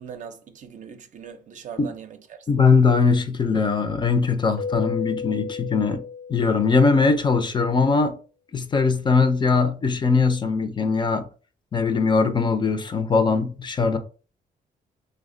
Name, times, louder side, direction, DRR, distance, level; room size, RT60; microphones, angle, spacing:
voice 1, 0.0-2.4, right 7 dB, 50° right, 0.5 m, -40 dB
voice 2, 2.5-6.0 6.3-8.1 8.5-11.3 11.7-14.0, left 4 dB, 30° left, 0.4 m, -20 dB
Keyboard (musical), 4.6-7.1, left 6 dB, 85° left, 0.6 m, -33 dB
3.3 x 2.1 x 3.7 m
cardioid pair, 130°, 16 cm